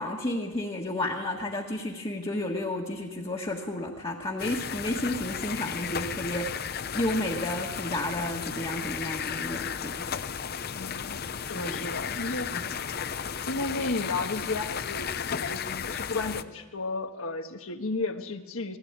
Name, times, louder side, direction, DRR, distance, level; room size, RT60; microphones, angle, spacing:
voice 1, 0.0-6.7 6.9-10.1 11.5-11.9 12.5-12.6, left 1 dB, 25° left, -2 dB, 1.5 m, -32 dB
sound 1, 4.4-16.4, left 7 dB, 45° left, 0.6 m, -34 dB
voice 2, 10.7-12.5 13.5-18.8, left 3 dB, 70° left, 6 dB, 1.5 m, -33 dB
20.5 x 16.0 x 8.8 m, 1.2 s
head